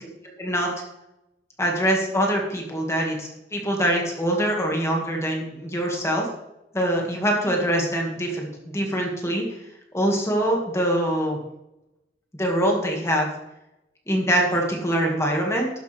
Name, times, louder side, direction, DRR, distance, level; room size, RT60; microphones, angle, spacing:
voice 1, 0.4-0.7 1.6-6.3 6.7-8.5 8.7-9.6 9.9-11.4 12.3-13.3 14.1-15.7, equal, 15° left, 0 dB, 2.0 m, -24 dB
12.0 x 11.0 x 3.4 m, 0.91 s
head